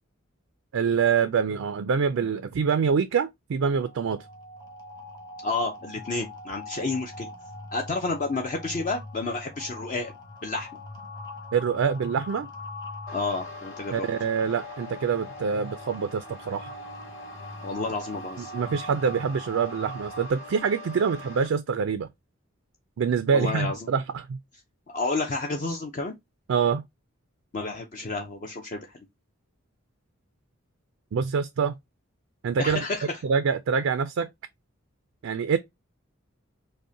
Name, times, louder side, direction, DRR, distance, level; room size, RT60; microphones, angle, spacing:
voice 1, 0.7-4.2 11.5-12.5 13.9-16.7 18.5-22.1 23.0-24.4 26.5-26.8 31.1-31.7 32.4-32.8 33.2-34.3 35.2-35.6, right 6 dB, 70° right, 0.3 m, -25 dB
sound 1, 3.7-20.3, left 1 dB, 20° left, 1.0 m, -42 dB
voice 2, 5.4-7.3 7.7-10.1 10.4-10.7 13.1-14.1 17.6-18.5 23.3-23.9 24.9-26.1 27.5-28.9 32.6-33.1, left 3 dB, 35° left, 0.5 m, -30 dB
sound 2, 13.1-21.5, left 2 dB, 70° left, 1.9 m, -44 dB
5.1 x 2.1 x 2.7 m
head